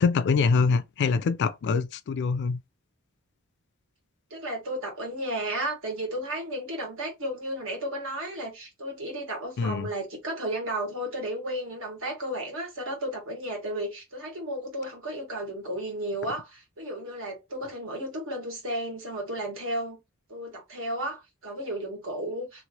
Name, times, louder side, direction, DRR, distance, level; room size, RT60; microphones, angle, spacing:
voice 1, 0.0-2.6 9.6-9.9, left 5 dB, 50° left, 0.3 m, -24 dB
voice 2, 4.3-20.0 20.3-22.6, right 1 dB, 65° right, 1.5 m, -33 dB
2.9 x 2.6 x 2.8 m
head